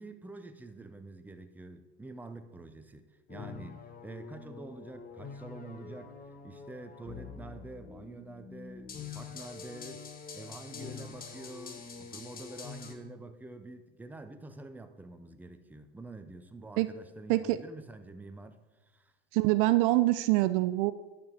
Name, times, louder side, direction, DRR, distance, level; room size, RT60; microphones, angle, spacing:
voice 1, 0.0-6.2 6.4-10.0 10.3-19.1, right 2 dB, 5° right, 9 dB, 0.7 m, -47 dB
sound 1, 3.3-12.9, left 6 dB, 30° left, 1.2 m, -45 dB
voice 2, 19.3-20.9, right 18 dB, 55° right, 14 dB, 0.5 m, -25 dB
10.5 x 7.0 x 4.3 m, 1.1 s
hypercardioid pair, 85°, 32 cm